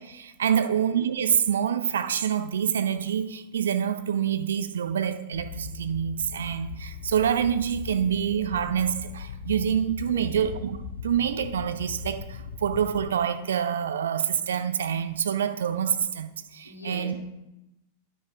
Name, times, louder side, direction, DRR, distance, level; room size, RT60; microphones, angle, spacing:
voice 1, 0.0-10.8 11.0-17.2, right 8 dB, 65° right, 10 dB, 0.5 m, -26 dB
sound 1, 5.3-13.1, left 6 dB, 65° left, 0.4 m, -39 dB
voice 2, 10.1-10.4 16.6-17.2, left 1 dB, 85° left, 0 dB, 1.6 m, -41 dB
9.4 x 6.7 x 2.4 m, 0.94 s
figure-of-eight pair, 90°, 0 cm